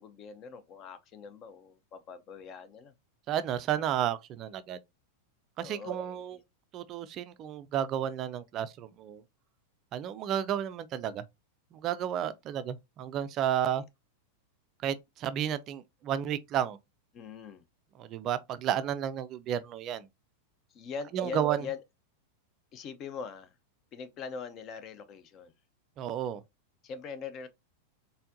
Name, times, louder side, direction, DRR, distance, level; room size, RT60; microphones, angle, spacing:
voice 1, 0.0-2.9 5.6-6.4 13.8-13.9 17.1-17.6 20.7-21.8 22.7-23.5 23.9-25.5 26.8-27.5, left 6 dB, 35° left, 0.6 m, -42 dB
voice 2, 3.3-4.8 5.6-6.4 6.7-9.2 9.9-11.2 11.8-13.8 14.8-16.8 18.0-20.1 21.1-21.6 26.0-26.4, right 10 dB, 35° right, 0.4 m, -32 dB
4.3 x 3.4 x 2.6 m
figure-of-eight pair, 90°, 0 cm